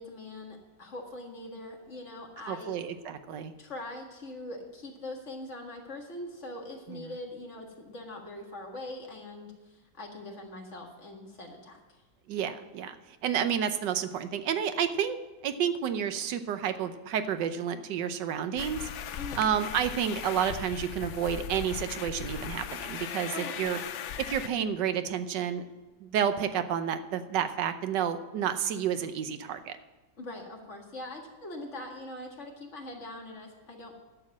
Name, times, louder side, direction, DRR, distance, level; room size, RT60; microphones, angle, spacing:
voice 1, 0.0-2.8 3.6-12.0 19.2-19.5 23.3-23.8 30.2-33.9, left 1 dB, 45° left, 1 dB, 2.0 m, -42 dB
voice 2, 2.4-3.5 6.9-7.1 12.3-13.0 13.2-15.2 15.4-18.9 19.4-23.8 24.2-25.6 26.0-29.8, right 8 dB, 90° right, 10 dB, 1.4 m, -30 dB
sound 1, 18.6-24.5, left 9 dB, 80° left, 0.6 m, -38 dB
11.5 x 7.1 x 7.3 m, 1.2 s
omnidirectional pair, 1.8 m